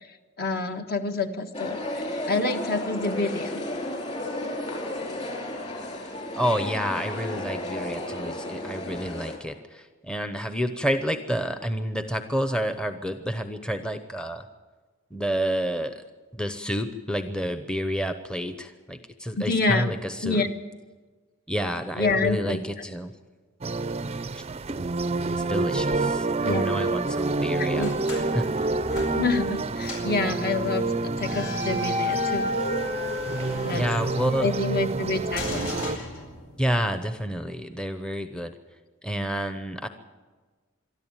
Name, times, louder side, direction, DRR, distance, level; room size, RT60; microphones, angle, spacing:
voice 1, 0.4-3.5 19.4-19.9 20.2-20.5 22.0-22.6 26.4-26.7 27.6-27.9 29.1-32.6 33.6-33.8 34.4-35.7, left 3 dB, 50° left, 6 dB, 1.7 m, -27 dB
sound 1, 1.5-9.4, left 1 dB, 30° left, 4.3 m, -33 dB
voice 2, 6.4-14.5 15.1-16.0 16.3-20.5 21.5-23.1 24.3-24.4 25.4-28.5 33.7-34.5 36.6-38.5 39.0-39.9, equal, 5° left, 8 dB, 0.9 m, -29 dB
sound 2, 23.6-36.0, right 3 dB, 30° right, 0.6 m, -28 dB
sound 3, 27.8-29.6 29.8-30.2 31.2-34.4 35.3-36.7, left 2 dB, 75° left, 8.0 m, -33 dB
24.0 x 13.0 x 9.0 m, 1.4 s
head